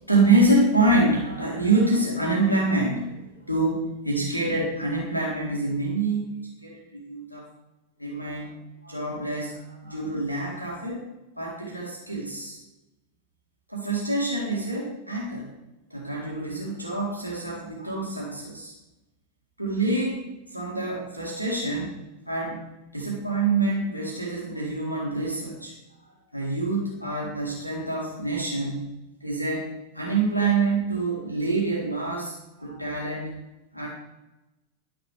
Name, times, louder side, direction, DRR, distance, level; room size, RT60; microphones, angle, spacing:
voice 1, 0.1-3.2 3.4-6.2 6.6-7.5 8.0-8.6 8.8-11.0 11.4-12.6 13.7-15.5 15.9-18.7 19.6-20.2 20.5-21.9 22.3-22.6 22.9-25.7 26.3-28.9 29.2-33.3 33.7-33.9, right 2 dB, 90° right, -4 dB, 2.1 m, -26 dB
10.5 x 6.9 x 3.4 m, 1.0 s
figure-of-eight pair, 90°, 0 cm